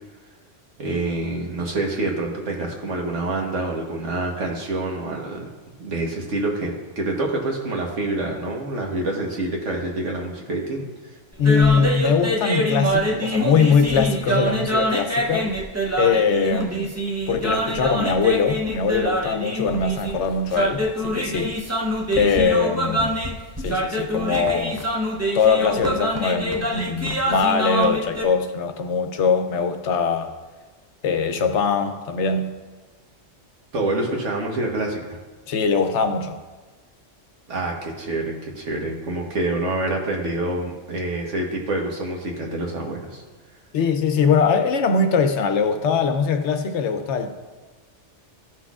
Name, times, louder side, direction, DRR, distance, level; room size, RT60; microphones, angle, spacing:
voice 1, 0.8-5.5 5.8-10.9 33.7-35.2 37.5-43.2, right 2 dB, 80° right, 1.6 m, -27 dB
sound 1, 11.3-28.2, right 1 dB, 20° right, 0.5 m, -25 dB
voice 2, 11.4-15.5 16.0-16.9 17.3-21.5 22.2-23.1 23.6-24.8 25.3-30.3 31.0-32.5 35.5-36.4 43.7-47.3, left 5 dB, 75° left, 1.0 m, -21 dB
14.0 x 5.9 x 2.4 m
omnidirectional pair, 1.2 m